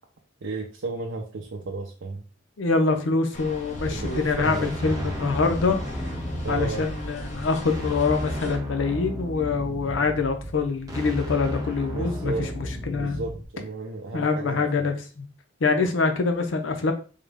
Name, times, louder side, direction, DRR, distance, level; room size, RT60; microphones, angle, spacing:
voice 1, 0.4-2.2 3.9-4.7 6.4-6.9 11.9-12.5 12.9-14.6, right 3 dB, 80° right, 0 dB, 0.6 m, -33 dB
voice 2, 2.6-5.8 6.5-13.2 14.1-15.2 15.6-16.9, left 4 dB, 70° left, 6 dB, 0.6 m, -25 dB
sound 1, 3.3-8.6, left 1 dB, 40° left, 0.9 m, -38 dB
sound 2, 3.7-13.4, equal, 20° right, 0.7 m, -33 dB
3.6 x 2.0 x 3.4 m, 0.36 s
head